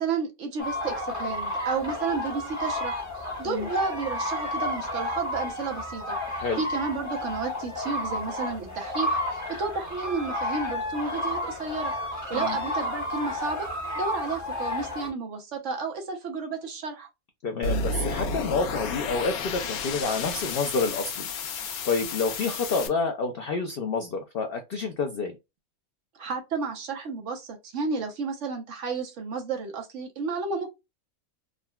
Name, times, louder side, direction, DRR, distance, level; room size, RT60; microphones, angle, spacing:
voice 1, 0.0-3.0 3.4-6.2 6.6-11.9 12.3-13.7 13.9-17.1 26.2-30.7, right 4 dB, 65° right, 1.0 m, -32 dB
sound 1, 0.6-15.1, left 1 dB, 15° left, 0.9 m, -31 dB
voice 2, 17.4-21.3 21.5-25.4, left 4 dB, 70° left, 0.5 m, -29 dB
sound 2, 17.6-22.9, left 3 dB, 90° left, 1.1 m, -32 dB
3.7 x 2.1 x 2.2 m
omnidirectional pair, 1.5 m